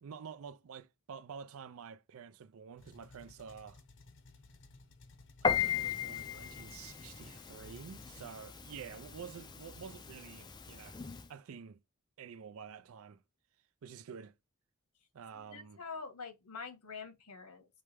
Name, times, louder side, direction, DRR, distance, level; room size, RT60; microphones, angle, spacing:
voice 1, 0.0-3.8 5.4-11.0 11.3-11.8 12.2-13.2 13.8-14.3 15.1-15.8, right 6 dB, 65° right, 0.4 m, -49 dB
sound 1, 2.8-8.3, left 3 dB, 55° left, 0.8 m, -58 dB
Piano, 5.4-11.3, left 7 dB, 20° left, 0.4 m, -38 dB
voice 2, 15.3-17.7, left 5 dB, 85° left, 1.3 m, -46 dB
4.8 x 3.2 x 3.3 m
head